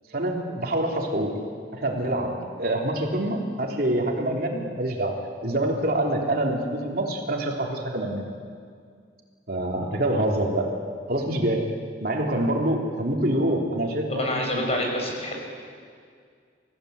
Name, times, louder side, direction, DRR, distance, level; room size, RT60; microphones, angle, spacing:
voice 1, 0.1-1.4 1.7-8.3 9.5-10.7 11.1-11.6 12.0-14.6, right 1 dB, 60° right, 0 dB, 3.4 m, -26 dB
voice 2, 14.1-15.4, left 1 dB, 40° left, 1 dB, 5.7 m, -27 dB
29.5 x 16.0 x 8.1 m, 2.1 s
head